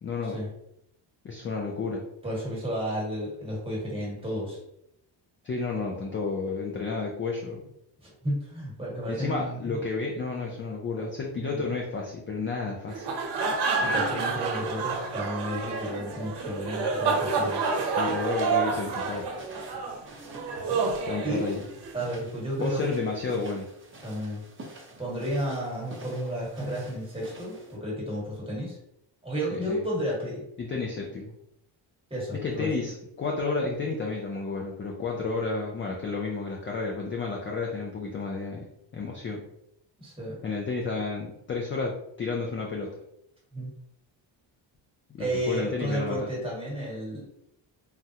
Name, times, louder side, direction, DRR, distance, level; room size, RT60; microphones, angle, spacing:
voice 1, 0.0-0.4 1.2-2.0 5.4-7.7 9.0-13.2 17.9-19.3 21.0-21.6 22.6-23.7 29.5-29.8 30.6-31.3 32.4-38.7 38.9-39.4 40.4-42.9 45.1-46.3, left 4 dB, 30° left, 0 dB, 0.3 m, -31 dB
voice 2, 2.2-4.6 8.0-9.8 11.4-11.7 13.8-17.6 21.2-21.5 21.9-22.9 24.0-24.4 25.0-28.8 29.2-30.4 32.1-32.7 40.0-40.4 43.5-43.7 45.2-47.2, equal, 10° right, -4 dB, 1.2 m, -32 dB
sound 1, 12.9-21.9, right 4 dB, 60° right, 0.8 m, -29 dB
sound 2, 17.0-27.8, right 2 dB, 30° right, 0.7 m, -47 dB
3.5 x 2.0 x 2.8 m, 0.77 s
cardioid pair, 130°, 45 cm